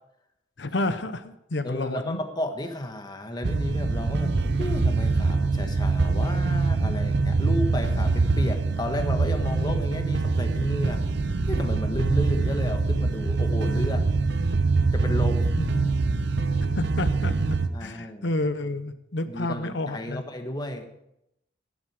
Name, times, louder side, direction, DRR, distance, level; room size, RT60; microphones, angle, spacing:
voice 1, 0.6-2.2 15.6-15.9 16.8-20.2, left 2 dB, 75° left, 11 dB, 0.9 m, -30 dB
voice 2, 1.6-11.0 11.5-14.1 14.9-15.5 17.6-18.3 19.3-21.0, left 1 dB, 25° left, 6 dB, 1.3 m, -32 dB
sound 1, 3.4-17.7, right 3 dB, 65° right, 0.8 m, -24 dB
11.0 x 11.0 x 4.9 m, 0.80 s
head